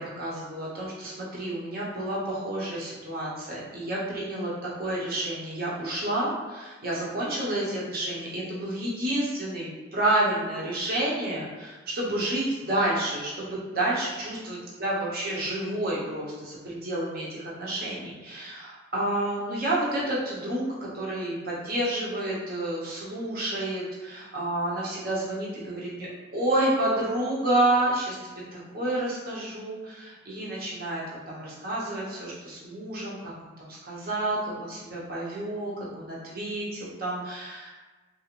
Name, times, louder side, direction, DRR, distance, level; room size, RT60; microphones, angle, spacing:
voice 1, 0.0-4.5 4.8-33.3 33.6-37.8, right 1 dB, 50° right, -6 dB, 0.6 m, -30 dB
2.4 x 2.0 x 2.9 m, 1.3 s
head